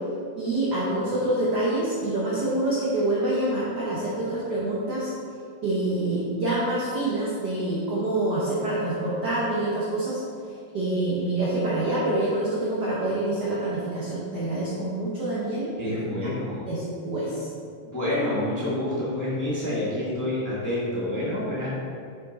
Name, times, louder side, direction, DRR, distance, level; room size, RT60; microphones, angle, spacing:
voice 1, 0.4-5.1 5.6-10.2 10.7-15.9 16.2-16.3 16.6-17.5, right 1 dB, 65° right, -7 dB, 1.0 m, -26 dB
voice 2, 15.8-16.7 17.8-21.7, left 1 dB, 10° left, -9 dB, 1.0 m, -28 dB
7.8 x 5.1 x 4.1 m, 2.3 s
omnidirectional pair, 3.5 m